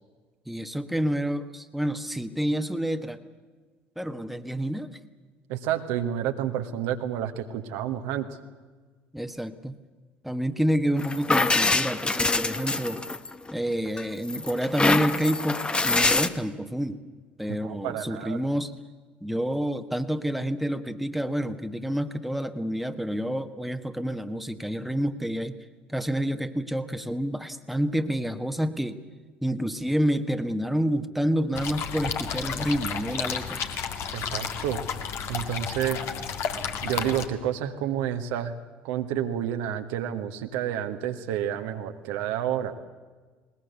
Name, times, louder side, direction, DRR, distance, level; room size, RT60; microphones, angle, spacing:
voice 1, 0.5-3.2 4.0-5.0 9.1-9.8 10.2-13.0 13.5-17.0 17.4-18.7 19.2-25.6 25.9-29.0 29.4-33.6, equal, ahead, 8 dB, 1.5 m, -28 dB
voice 2, 5.5-8.3 17.6-18.4 34.1-34.8 35.3-36.0 36.8-38.5 38.8-42.8, right 10 dB, 65° right, 6 dB, 1.6 m, -29 dB
sound 1, 11.0-13.5 14.0-16.3, left 3 dB, 20° left, 1.2 m, -25 dB
sound 2, 31.5-37.3, left 7 dB, 50° left, 1.9 m, -32 dB
20.5 x 20.0 x 8.2 m, 1.4 s
figure-of-eight pair, 60°, 6 cm